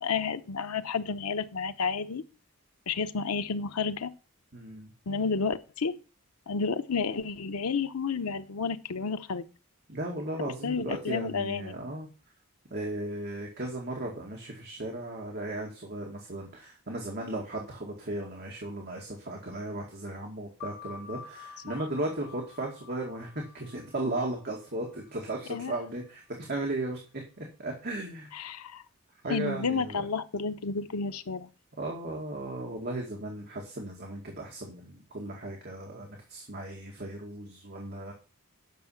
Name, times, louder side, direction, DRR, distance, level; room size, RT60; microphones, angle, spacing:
voice 1, 0.0-2.2 2.9-4.1 5.1-5.9 6.5-9.4 10.4-11.7 25.5-25.7 28.3-28.8 29.3-31.5, left 5 dB, 80° left, 10 dB, 0.8 m, -31 dB
voice 2, 4.5-4.9 9.9-12.1 12.7-26.2 26.5-27.0 27.4-28.3 29.2-30.0 31.8-38.1, right 1 dB, 45° right, -1 dB, 2.2 m, -36 dB
sound 1, 20.6-25.8, left 6 dB, 50° left, 2.4 m, -49 dB
9.4 x 6.4 x 5.9 m, 0.35 s
head